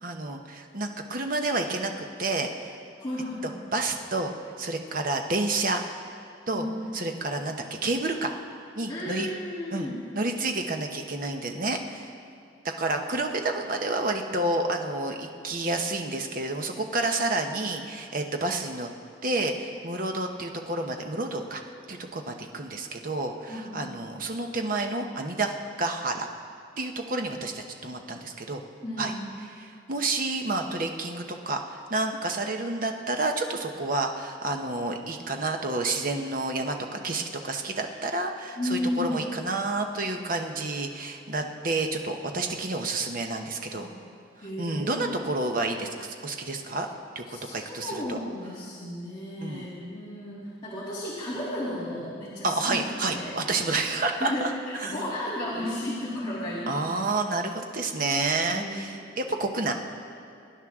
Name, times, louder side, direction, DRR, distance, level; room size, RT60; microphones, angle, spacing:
voice 1, 0.0-2.7 3.7-4.3 4.6-5.8 6.5-6.6 6.9-8.3 8.8-9.3 9.7-9.9 10.1-12.1 12.6-18.9 19.2-21.6 21.9-26.3 26.8-28.6 29.0-29.1 29.6-43.9 44.6-46.9 47.1-48.2 49.4-49.7 52.4-54.5 54.8-54.9 56.7-59.7, right 2 dB, 45° right, 4 dB, 1.0 m, -29 dB
voice 2, 3.0-3.6 6.5-6.8 8.9-10.0 23.5-24.1 28.8-29.2 38.6-39.2 43.8-43.9 44.4-45.1 47.3-53.4 53.7-53.8 54.2-56.8 58.5-59.0, left 1 dB, 25° left, -11 dB, 2.9 m, -34 dB
23.0 x 10.5 x 3.7 m, 2.5 s
head